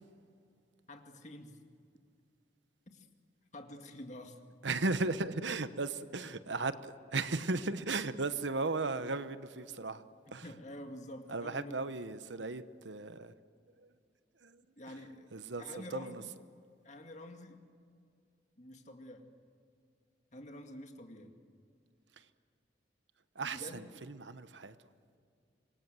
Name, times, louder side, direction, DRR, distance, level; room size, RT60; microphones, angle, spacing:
voice 1, 0.9-1.6 2.9-3.1 3.5-4.4 10.4-11.7 14.8-16.3 16.8-17.6 18.6-19.3 20.3-21.4 23.4-23.8, left 1 dB, 40° left, 5 dB, 2.2 m, -48 dB
voice 2, 4.6-10.0 10.3-10.5 11.3-13.3 13.8-13.9 14.4-14.6 14.9-15.0 15.3-16.2 22.2-22.3 23.3-24.7, right 3 dB, 85° right, 12 dB, 1.1 m, -36 dB
26.5 x 22.0 x 7.6 m, 2.3 s
head